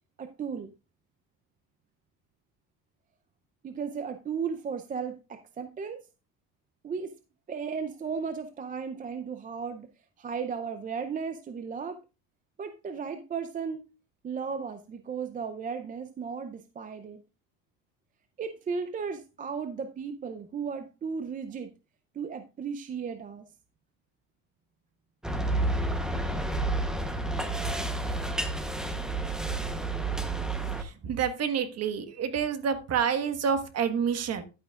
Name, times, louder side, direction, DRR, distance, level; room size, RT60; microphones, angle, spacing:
voice 1, 0.2-0.7 3.6-6.0 6.8-7.1 7.5-9.9 10.2-12.0 12.6-13.8 14.2-17.2 18.4-21.7 22.1-23.4, right 6 dB, 20° right, 0.5 m, -35 dB
sound 1, 25.2-30.8, right 2 dB, ahead, 0.8 m, -30 dB
voice 2, 30.7-34.4, right 7 dB, 40° right, 1.3 m, -28 dB
11.0 x 8.7 x 2.4 m
cardioid pair, 135°, 38 cm